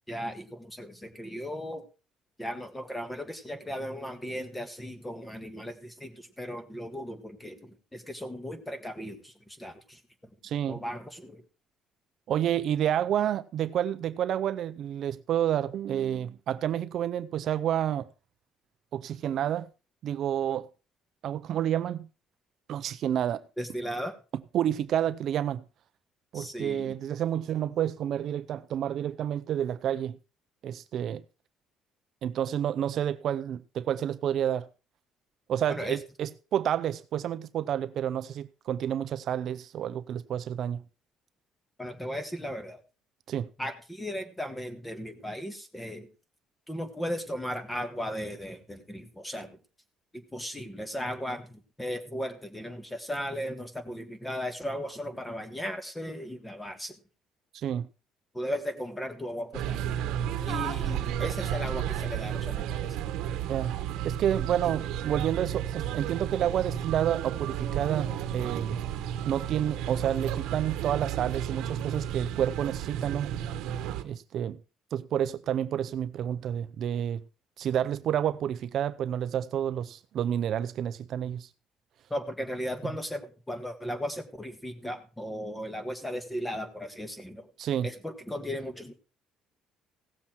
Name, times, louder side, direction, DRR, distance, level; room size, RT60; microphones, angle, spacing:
voice 1, 0.1-1.8 2.4-10.0 10.7-11.4 23.6-24.1 26.3-27.0 35.7-36.0 41.8-42.8 43.6-46.1 46.7-49.6 50.3-57.0 58.3-60.0 60.5-63.0 64.6-64.7 82.1-87.5 87.8-88.9, equal, 10° left, 1.7 m, -36 dB
voice 2, 10.4-10.8 12.3-18.1 18.9-19.7 20.0-20.7 21.2-22.1 22.7-23.4 24.5-25.6 26.3-30.2 30.6-31.2 32.2-34.7 35.5-40.8 43.3-43.5 57.5-57.9 63.5-63.7 64.0-68.8 69.3-73.3 74.0-74.6 74.9-77.2 77.6-81.5 87.6-87.9, right 10 dB, 60° right, 0.5 m, -29 dB
sound 1, 59.5-74.0, right 10 dB, 85° right, 1.1 m, -32 dB
16.5 x 7.2 x 4.5 m
cardioid pair, 125°, 0 cm